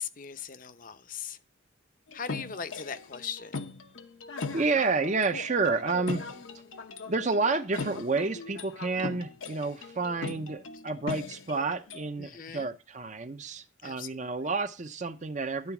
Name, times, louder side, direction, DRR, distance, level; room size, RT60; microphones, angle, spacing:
voice 1, 0.0-1.4 2.1-3.6 12.2-12.7 13.8-14.2, left 7 dB, 45° left, 0.7 m, -39 dB
sound 1, 2.1-12.1, left 3 dB, 85° left, 1.0 m, -39 dB
voice 2, 4.5-6.2 7.1-15.7, right 3 dB, 40° right, 0.7 m, -30 dB
12.0 x 4.0 x 5.9 m
head